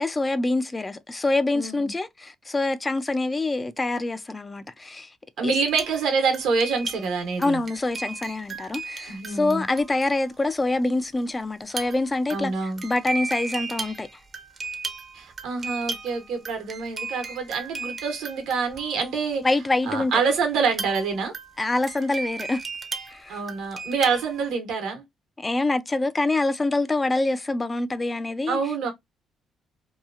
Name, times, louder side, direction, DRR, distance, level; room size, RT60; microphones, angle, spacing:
voice 1, 0.0-5.1 5.4-5.5 7.4-14.1 19.4-20.1 21.6-22.6 23.1-23.4 25.4-28.6, left 2 dB, 25° left, 0.4 m, -25 dB
voice 2, 1.5-1.9 5.4-7.6 9.1-9.6 12.3-12.8 15.1-19.5 19.9-21.3 23.3-25.0 28.5-28.9, right 5 dB, 85° right, 1.0 m, -26 dB
sound 1, 5.6-10.4 11.6-19.5 20.6-24.5, right 4 dB, 40° right, 0.6 m, -36 dB
2.9 x 2.3 x 2.4 m
cardioid pair, 85°, 0 cm